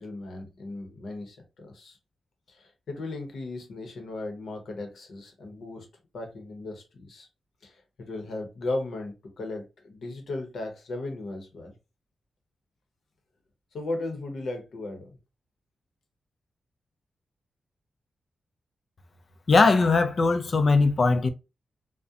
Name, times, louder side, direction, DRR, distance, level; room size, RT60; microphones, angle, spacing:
voice 1, 0.0-2.0 2.5-5.9 6.1-7.3 7.6-11.7 13.7-15.1, left 2 dB, 75° left, 0.8 m, -36 dB
voice 2, 19.5-21.3, left 3 dB, 45° left, 0.4 m, -20 dB
2.3 x 2.1 x 2.7 m
wide cardioid pair, 105°, 0 cm